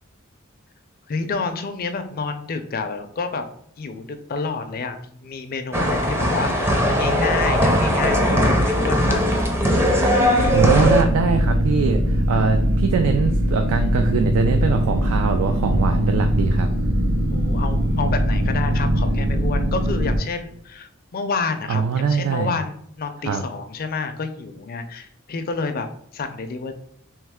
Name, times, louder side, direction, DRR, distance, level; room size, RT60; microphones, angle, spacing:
voice 1, 1.1-3.4 3.8-9.2 17.3-25.9 26.1-26.7, left 4 dB, 45° left, 8 dB, 0.4 m, -29 dB
sound 1, 5.7-11.0, equal, 10° right, 0.5 m, -19 dB
sound 2, 10.4-20.2, equal, 70° right, 1.1 m, -21 dB
voice 2, 10.5-16.7 21.7-22.5 23.2-23.4, right 5 dB, 85° right, 6 dB, 0.3 m, -22 dB
3.2 x 3.1 x 3.5 m, 0.66 s
head